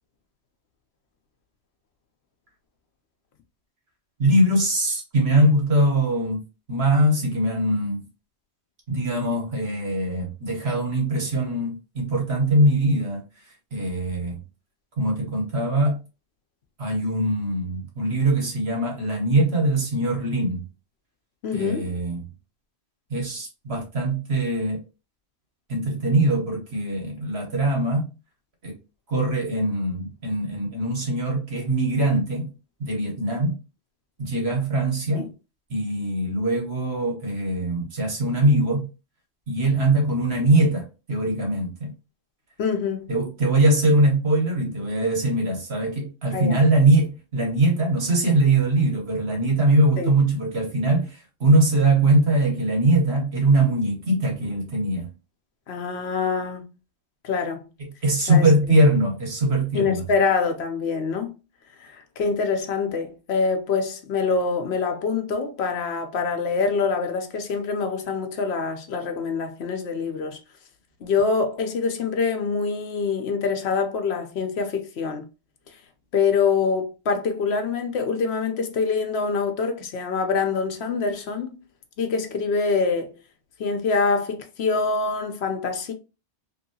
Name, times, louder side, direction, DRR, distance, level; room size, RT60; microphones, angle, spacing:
voice 1, 4.2-6.4 6.7-8.0 8.9-13.2 13.7-14.4 15.0-16.0 16.8-20.6 21.5-22.2 23.1-24.8 25.7-28.1 28.6-28.8 29.1-32.5 32.8-33.6 34.2-35.3 35.7-38.9 39.5-41.9 43.1-55.1 58.0-60.0, right 1 dB, 65° right, 1.4 m, -22 dB
voice 2, 21.4-21.9 35.1-35.3 42.6-43.1 46.3-46.6 50.0-50.1 55.7-56.6 57.2-57.7 58.3-58.8 59.7-61.3 61.8-70.4 71.0-75.3 76.1-81.6 82.0-83.2 83.6-85.9, left 5 dB, 75° left, 0.9 m, -25 dB
2.9 x 2.7 x 2.7 m
omnidirectional pair, 1.1 m